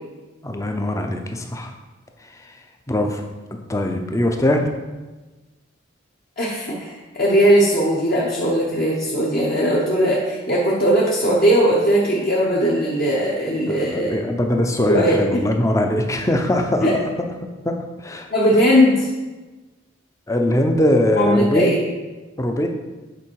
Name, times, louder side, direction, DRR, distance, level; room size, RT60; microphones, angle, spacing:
voice 1, 0.4-1.7 2.4-2.5 2.9-3.2 3.7-4.6 13.7-17.1 17.6-18.3 20.3-21.7 22.4-22.7, left 1 dB, 15° left, 4 dB, 0.6 m, -21 dB
voice 2, 6.4-14.1 14.9-15.2 16.8-16.9 18.3-19.1 21.2-21.8, equal, 45° left, -6 dB, 1.1 m, -18 dB
8.7 x 4.4 x 4.7 m, 1.2 s
head